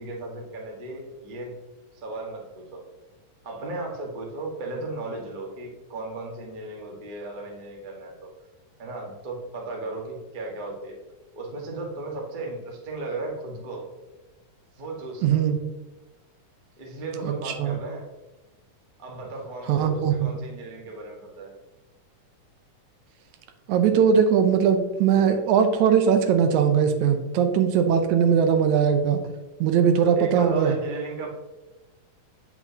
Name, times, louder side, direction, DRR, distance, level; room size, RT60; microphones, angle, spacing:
voice 1, 0.0-1.5 1.9-2.9 3.4-8.3 8.8-11.0 11.3-13.9 14.7-15.4 16.8-18.1 19.0-21.5 30.0-31.3, right 2 dB, 60° right, -1 dB, 0.5 m, -35 dB
voice 2, 15.2-15.6 17.2-17.8 19.7-20.3 23.7-29.2 29.6-30.8, right 7 dB, 75° right, 7 dB, 1.9 m, -20 dB
8.3 x 7.1 x 2.8 m, 1.1 s
omnidirectional pair, 3.6 m